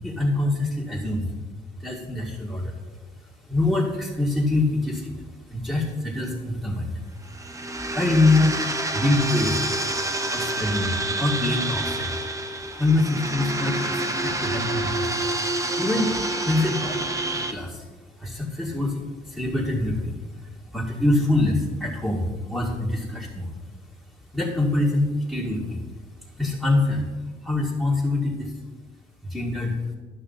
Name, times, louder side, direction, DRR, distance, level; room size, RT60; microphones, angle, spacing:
voice 1, 0.0-1.2 1.8-2.7 3.5-5.1 5.5-6.8 7.9-8.5 8.9-9.6 10.3-12.1 12.8-15.1 15.8-16.1 16.5-17.8 18.2-18.9 19.3-20.1 20.7-23.5 24.3-25.8 26.4-27.0 27.4-28.5 29.3-29.8, left 2 dB, ahead, -6 dB, 1.8 m, -24 dB
sound 1, 7.2-17.5, right 2 dB, 15° right, 0.9 m, -28 dB
11.5 x 6.2 x 4.1 m, 1.3 s
cardioid pair, 90°, 20 cm